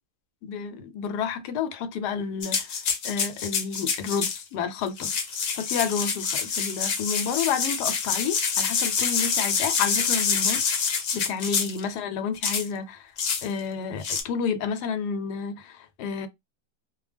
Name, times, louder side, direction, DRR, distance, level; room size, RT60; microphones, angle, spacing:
voice 1, 0.4-2.8 3.0-5.1 5.6-13.1 13.4-16.3, left 6 dB, 85° left, 1.2 m, -30 dB
sound 1, 2.4-4.4 4.9-11.8 12.4-12.7 13.2-13.5 14.0-14.2, left 6 dB, 60° left, 1.0 m, -26 dB
2.6 x 2.1 x 3.3 m
omnidirectional pair, 1.7 m